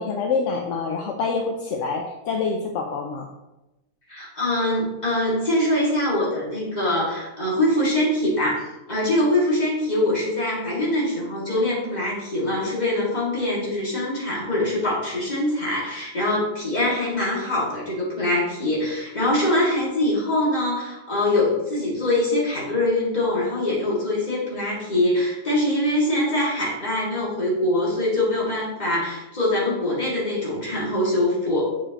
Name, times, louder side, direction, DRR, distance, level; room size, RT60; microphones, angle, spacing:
voice 1, 0.0-3.3, left 4 dB, 75° left, 2 dB, 0.9 m, -26 dB
voice 2, 4.1-31.7, left 1 dB, 35° left, -6 dB, 2.2 m, -23 dB
6.8 x 4.8 x 2.9 m, 0.98 s
omnidirectional pair, 1.3 m